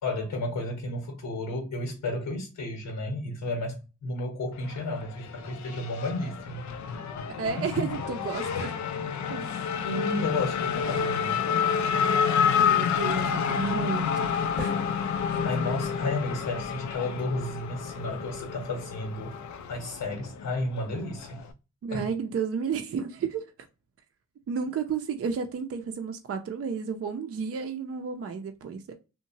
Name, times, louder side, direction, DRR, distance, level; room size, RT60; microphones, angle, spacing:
voice 1, 0.0-6.6 7.6-7.9 9.8-11.5 15.4-19.3 19.7-21.4 21.9-22.1, left 2 dB, 85° left, 0.9 m, -32 dB
Race car auto racing / Accelerating revving vroom, 4.5-21.5, left 7 dB, 65° left, 0.5 m, -29 dB
voice 2, 7.4-8.7 9.3-9.6 12.6-14.8 21.8-23.4 24.5-28.9, right 6 dB, 50° right, 0.5 m, -32 dB
sound 1, 14.6-18.1, left 4 dB, 10° right, 1.0 m, -40 dB
2.8 x 2.1 x 2.6 m
cardioid pair, 65°, 31 cm